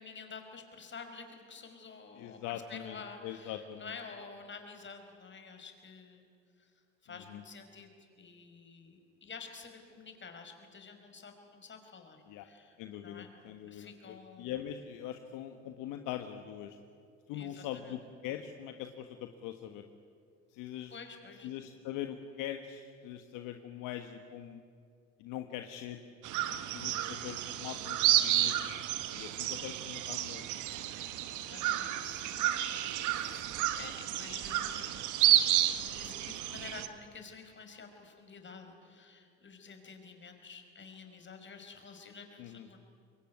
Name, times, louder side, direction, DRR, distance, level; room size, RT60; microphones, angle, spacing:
voice 1, 0.0-6.3 6.6-6.7 7.0-7.9 8.2-12.8 13.0-13.3 13.7-14.5 17.3-18.0 20.9-21.5 26.6-26.9 31.3-32.7 33.1-34.9 35.8-42.8, left 5 dB, 35° left, 5 dB, 5.4 m, -50 dB
voice 2, 2.1-3.9 7.1-7.4 12.3-12.4 12.8-16.8 17.3-19.8 20.5-20.9 21.4-24.6 25.2-26.0 26.5-28.7 29.1-30.4 42.4-42.7, left 11 dB, 65° left, 7 dB, 1.5 m, -42 dB
sound 1, 26.2-36.9, right 13 dB, 60° right, 1.7 m, -31 dB
25.5 x 22.5 x 9.6 m, 2.3 s
hypercardioid pair, 70°, 34 cm